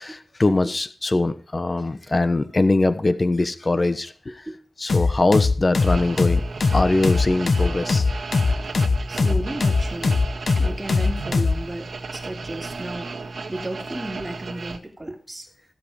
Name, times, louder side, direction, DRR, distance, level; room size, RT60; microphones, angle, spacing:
voice 1, 0.0-4.5 4.8-6.4 6.7-8.1, left 2 dB, 35° left, 11 dB, 1.1 m, -22 dB
sound 1, 4.9-11.6, left 4 dB, 60° left, 1.2 m, -20 dB
sound 2, 5.8-14.8, right 4 dB, 80° right, 1.9 m, -34 dB
voice 2, 9.1-10.2 10.6-13.1 13.5-15.5, right 1 dB, 15° right, 2 dB, 2.9 m, -33 dB
16.0 x 7.9 x 5.1 m, 0.41 s
wide cardioid pair, 105°, 0 cm